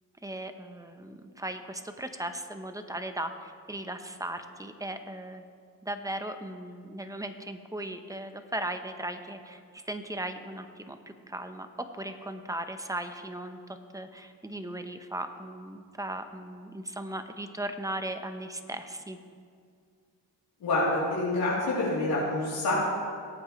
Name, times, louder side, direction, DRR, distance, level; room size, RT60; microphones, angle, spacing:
voice 1, 0.2-5.4 5.8-11.7 11.9-13.6 13.9-19.2, right 1 dB, 10° right, 7 dB, 0.9 m, -37 dB
voice 2, 20.6-22.9, left 2 dB, 80° left, -9 dB, 3.3 m, -27 dB
20.5 x 8.7 x 3.2 m, 2.1 s
cardioid pair, 80°, 37 cm